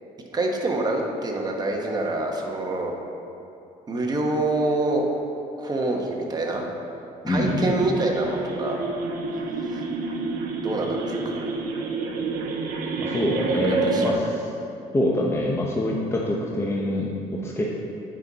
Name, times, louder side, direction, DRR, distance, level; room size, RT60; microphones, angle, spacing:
voice 1, 0.3-2.9 3.9-5.0 5.6-6.6 7.2-8.8 9.5-9.8 10.6-11.5 13.7-14.2, right 2 dB, 25° right, 0 dB, 1.2 m, -26 dB
voice 2, 7.2-7.7 13.0-14.5 14.9-17.7, left 1 dB, 15° left, -2 dB, 0.7 m, -25 dB
sound 1, 7.3-14.1, right 4 dB, 70° right, 1.0 m, -29 dB
9.0 x 5.5 x 4.1 m, 2.7 s
cardioid pair, 110°, 15 cm